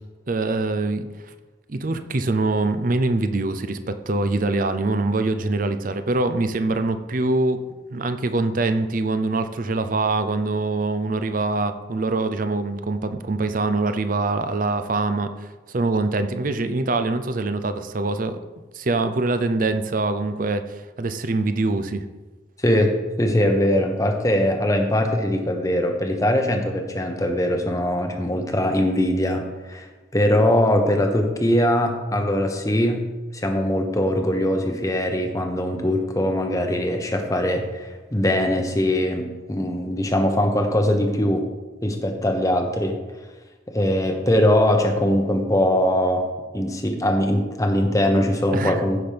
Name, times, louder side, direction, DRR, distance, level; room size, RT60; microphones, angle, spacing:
voice 1, 0.3-1.1 1.7-7.6 7.9-18.4 18.7-22.0 48.5-48.8, right 2 dB, 45° right, 10 dB, 0.5 m, -24 dB
voice 2, 22.6-33.0 33.3-41.5 41.8-43.0 43.7-46.2 46.5-49.0, left 1 dB, 15° left, 4 dB, 0.9 m, -21 dB
15.0 x 6.0 x 3.4 m, 1.2 s
head